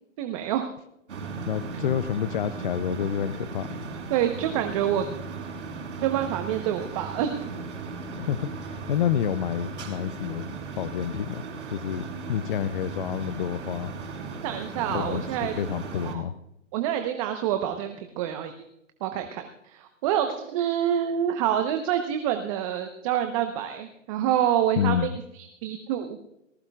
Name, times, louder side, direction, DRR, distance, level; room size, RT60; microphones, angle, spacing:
voice 1, 0.2-0.7 4.1-5.0 6.0-7.5 14.4-15.5 16.0-16.2 16.7-18.5 19.0-25.1 25.4-26.2, right 10 dB, 25° right, 7 dB, 0.9 m, -27 dB
sound 1, 1.1-16.1, right 4 dB, 65° right, 5.0 m, -37 dB
voice 2, 1.5-3.9 8.1-11.4 11.7-13.9 14.9-16.3 24.8-25.2, left 9 dB, 40° left, 13 dB, 0.6 m, -29 dB
19.0 x 17.5 x 2.4 m, 0.83 s
hypercardioid pair, 145°, 38 cm